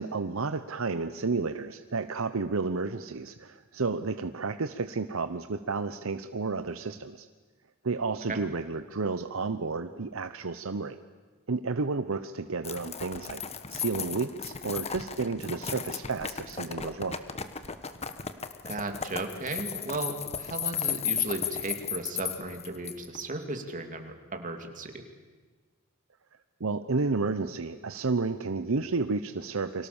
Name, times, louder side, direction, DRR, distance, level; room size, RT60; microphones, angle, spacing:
voice 1, 0.0-7.3 7.8-11.0 11.5-13.4 13.7-17.3 26.6-29.9, right 4 dB, 70° right, 10 dB, 0.8 m, -31 dB
sound 1, 12.6-23.2, left 7 dB, 30° left, 1.3 m, -35 dB
voice 2, 18.6-25.0, right 2 dB, 40° right, 5 dB, 2.9 m, -35 dB
29.5 x 24.0 x 7.2 m, 1.4 s
head